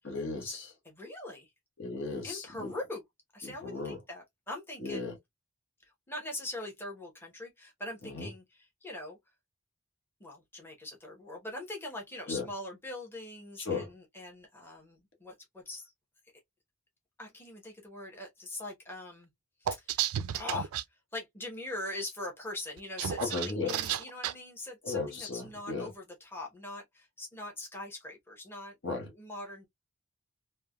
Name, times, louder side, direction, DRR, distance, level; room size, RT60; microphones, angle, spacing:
voice 1, 0.0-0.7 1.8-2.7 3.4-4.0 4.8-5.2 8.0-8.3 12.3-12.5 13.6-13.9 23.2-23.8 24.8-25.9 28.8-29.1, left 3 dB, 60° left, 1.0 m, -36 dB
voice 2, 0.9-1.5 2.2-3.0 3.3-5.1 6.1-8.4 8.8-9.2 10.2-15.9 17.2-19.3 19.6-20.7 21.1-26.0 26.3-28.8 29.2-29.7, left 2 dB, 10° left, 0.8 m, -42 dB
sound 1, 19.7-20.8 22.8-24.3, right 10 dB, 90° right, 0.3 m, -32 dB
3.3 x 2.1 x 2.2 m
head